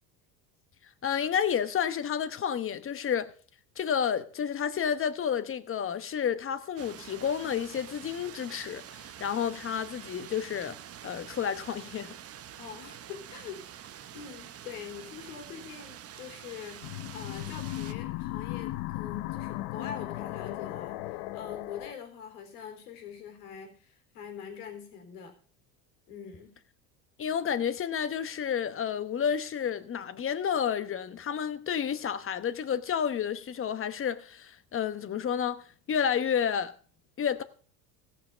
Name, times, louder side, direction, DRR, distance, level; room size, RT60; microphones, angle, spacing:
voice 1, 1.0-3.3 3.8-10.8 11.0-12.1 27.2-36.7 37.2-37.4, left 8 dB, 30° left, 1.0 m, -30 dB
sound 1, 6.8-17.9, right 10 dB, 35° right, 0.8 m, -47 dB
voice 2, 12.6-13.9 14.1-25.3 26.1-26.5, left 8 dB, 85° left, 3.6 m, -44 dB
sound 2, 16.8-21.9, left 17 dB, 70° left, 0.7 m, -36 dB
16.0 x 6.0 x 5.7 m
supercardioid pair, 100°, 44 cm